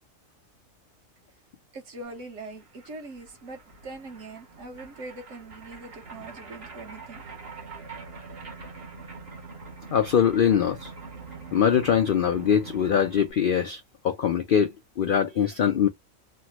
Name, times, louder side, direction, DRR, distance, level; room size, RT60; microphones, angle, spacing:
voice 1, 1.7-7.2 15.3-15.7, right 2 dB, 65° right, 1.3 m, -42 dB
sound 1, 2.2-2.3 2.4-13.3, right 4 dB, 50° right, 1.2 m, -44 dB
voice 2, 9.9-10.9 11.5-15.9, left 8 dB, 75° left, 0.5 m, -23 dB
3.3 x 2.1 x 2.9 m
omnidirectional pair, 1.4 m